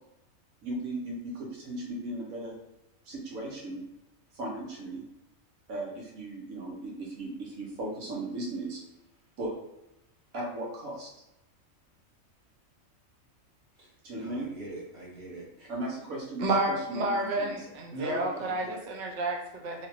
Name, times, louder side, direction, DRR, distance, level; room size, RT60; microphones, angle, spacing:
voice 1, 0.6-2.5 3.0-3.8 4.3-5.0 5.7-8.8 9.4-9.5 10.3-11.1 14.0-14.5 15.7-17.7, right 1 dB, 85° right, -2 dB, 1.3 m, -37 dB
voice 2, 13.8-15.7 17.9-18.8, right 1 dB, 40° right, -5 dB, 1.2 m, -41 dB
voice 3, 16.4-19.9, right 2 dB, 65° right, 2 dB, 0.4 m, -30 dB
3.2 x 2.5 x 2.9 m, 0.87 s
omnidirectional pair, 1.4 m